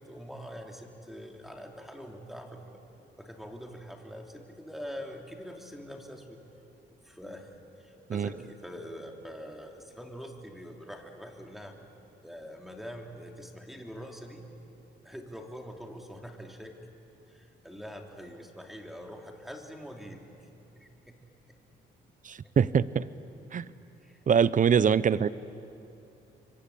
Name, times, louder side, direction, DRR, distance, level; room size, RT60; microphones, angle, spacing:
voice 1, 0.0-2.8 3.2-6.4 7.0-7.5 7.8-11.8 12.2-14.4 15.0-16.8 17.3-20.2 20.7-21.2 22.4-22.5 24.0-24.2, equal, ahead, 2 dB, 3.1 m, -44 dB
voice 2, 22.2-23.1 23.5-23.6 24.3-25.3, right 7 dB, 40° right, 17 dB, 0.8 m, -23 dB
28.5 x 24.0 x 8.5 m, 2.8 s
cardioid pair, 90°, 20 cm